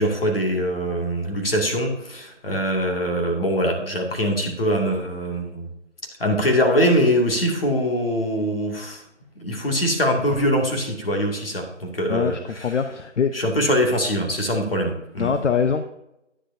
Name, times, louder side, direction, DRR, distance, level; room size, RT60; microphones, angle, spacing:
voice 1, 0.0-5.7 6.2-9.0 9.4-12.7 13.3-15.3, equal, 50° left, 3 dB, 2.3 m, -23 dB
voice 2, 12.1-13.3 15.2-15.9, left 6 dB, 75° left, 8 dB, 0.8 m, -23 dB
10.0 x 9.8 x 2.7 m, 0.86 s
figure-of-eight pair, 170°, 36 cm